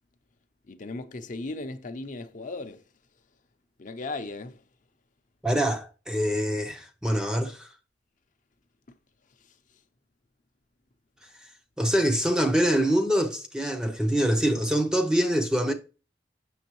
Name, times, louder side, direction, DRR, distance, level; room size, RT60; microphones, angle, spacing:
voice 1, 0.7-2.8 3.8-4.6, left 2 dB, 45° left, 0.7 m, -36 dB
voice 2, 5.4-7.7 11.8-15.7, equal, 5° right, 0.6 m, -24 dB
7.8 x 6.3 x 3.1 m
head